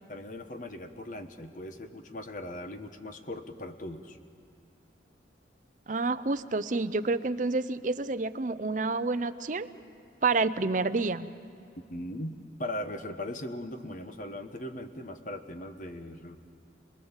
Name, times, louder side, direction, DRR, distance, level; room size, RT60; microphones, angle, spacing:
voice 1, 0.1-4.2 11.9-16.4, left 1 dB, 45° left, 8 dB, 1.2 m, -39 dB
voice 2, 5.9-9.7 10.2-11.3, right 3 dB, 45° right, 12 dB, 0.6 m, -28 dB
27.0 x 20.5 x 7.3 m, 2.6 s
head